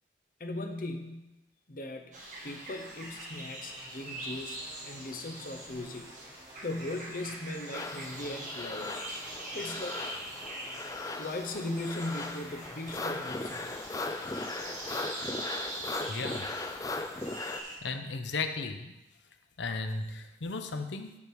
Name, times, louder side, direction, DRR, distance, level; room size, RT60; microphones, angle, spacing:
voice 1, 0.4-1.3 1.7-2.1 2.4-6.1 6.6-9.0 9.5-10.0 11.1-13.8, left 2 dB, 50° left, 5 dB, 0.9 m, -38 dB
sound 1, 2.1-17.8, right 1 dB, 45° right, 2.0 m, -43 dB
sound 2, 3.6-12.8, equal, 15° right, 1.5 m, -54 dB
sound 3, 7.7-17.6, left 2 dB, 20° left, 0.4 m, -38 dB
voice 2, 16.1-16.5 17.8-18.9 19.6-21.2, left 3 dB, 85° left, 7 dB, 0.7 m, -35 dB
9.5 x 5.1 x 4.8 m, 1.0 s
head